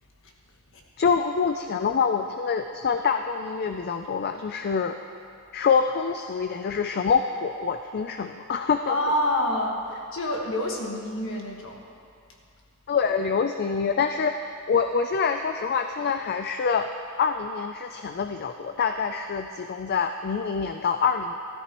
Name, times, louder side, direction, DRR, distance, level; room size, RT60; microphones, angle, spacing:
voice 1, 1.0-4.9 5.5-8.9 12.9-14.3 14.7-16.9 17.2-21.4, left 6 dB, 45° left, 6 dB, 0.4 m, -25 dB
voice 2, 8.8-11.8, left 1 dB, 65° left, 0 dB, 1.6 m, -27 dB
15.5 x 13.0 x 3.0 m, 2.4 s
head